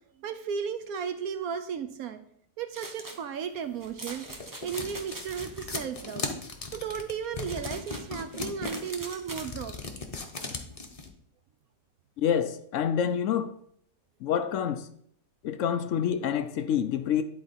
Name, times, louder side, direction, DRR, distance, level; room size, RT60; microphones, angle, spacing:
voice 1, 0.2-2.2 2.6-4.3 4.6-6.3 6.7-9.9, right 7 dB, 70° right, 1.0 m, -35 dB
sound 1, 2.7-3.2 3.8-5.7 7.4-9.5, right 2 dB, 25° right, 0.4 m, -43 dB
sound 2, 3.8-11.1, left 3 dB, 30° left, 0.7 m, -37 dB
voice 2, 12.2-13.6 14.2-14.9 15.4-17.2, left 8 dB, 70° left, 0.7 m, -27 dB
11.0 x 4.1 x 4.1 m
omnidirectional pair, 1.7 m